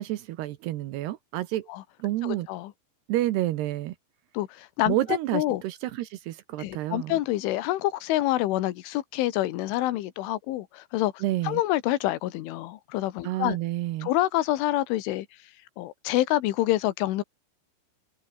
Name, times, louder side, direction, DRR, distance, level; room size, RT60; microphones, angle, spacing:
voice 1, 0.0-1.7 2.0-2.5 3.1-4.0 4.9-7.2 11.2-11.6 13.2-14.1, right 15 dB, 75° right, 2.7 m, -29 dB
voice 2, 2.2-2.7 4.4-5.0 5.3-5.6 6.6-13.6 14.0-15.3 15.8-17.2, left 15 dB, 85° left, 3.7 m, -27 dB
omnidirectional pair, 5.5 m